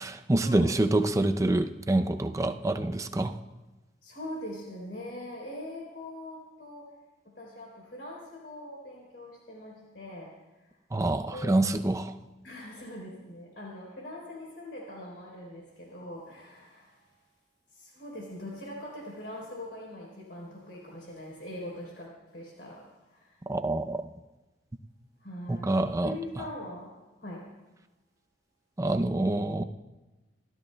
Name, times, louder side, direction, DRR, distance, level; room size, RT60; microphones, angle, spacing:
voice 1, 0.0-3.4 10.9-12.2 23.5-24.0 25.5-26.4 28.8-29.6, right 2 dB, 20° right, 8 dB, 0.5 m, -26 dB
voice 2, 4.0-6.9 7.3-10.3 10.6-10.7 11.3-11.6 12.4-17.1 17.7-23.4 25.2-25.7 26.0-27.5, left 1 dB, 70° left, -3 dB, 3.5 m, -42 dB
26.0 x 13.0 x 2.2 m, 1.1 s
head